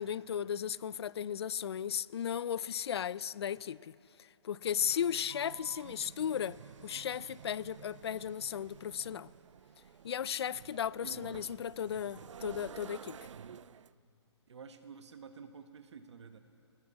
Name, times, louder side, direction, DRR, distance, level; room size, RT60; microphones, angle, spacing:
voice 1, 0.0-3.9 4.4-9.3 10.0-13.2, left 8 dB, 60° left, 0.5 m, -35 dB
sound 1, 4.6-13.9, right 8 dB, 85° right, 0.4 m, -52 dB
voice 2, 11.0-11.7 13.2-13.6 14.5-16.4, right 6 dB, 70° right, 1.5 m, -50 dB
19.0 x 18.0 x 8.5 m
hypercardioid pair, 165°, 15 cm